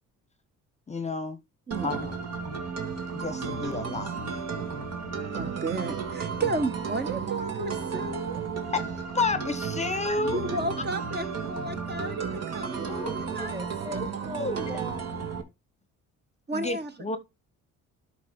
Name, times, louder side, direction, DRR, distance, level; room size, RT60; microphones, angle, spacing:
voice 1, 0.9-1.4 1.8-2.1 3.1-4.1 8.7-10.4 12.9-13.2 14.0-14.1 14.4-14.6 16.5-17.2, left 3 dB, 20° left, 0.9 m, -30 dB
voice 2, 1.7-2.1 5.2-8.4 10.2-13.7 16.5-16.9, right 2 dB, 35° right, 1.2 m, -33 dB
sound 1, 1.7-15.4, right 6 dB, 60° right, 1.7 m, -33 dB
voice 3, 13.3-15.1, equal, 10° right, 1.3 m, -40 dB
12.0 x 5.0 x 3.6 m
cardioid pair, 90°, 30 cm